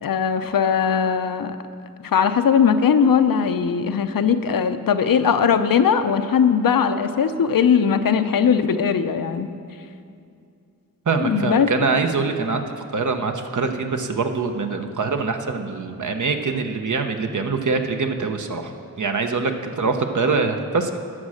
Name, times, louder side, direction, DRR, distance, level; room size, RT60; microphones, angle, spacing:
voice 1, 0.0-1.6 2.0-9.5 11.2-11.7, left 7 dB, 75° left, 9 dB, 0.7 m, -19 dB
voice 2, 11.1-18.7 19.0-21.0, right 4 dB, 60° right, 5 dB, 1.0 m, -24 dB
12.5 x 7.4 x 6.4 m, 2.5 s
cardioid pair, 60°, 34 cm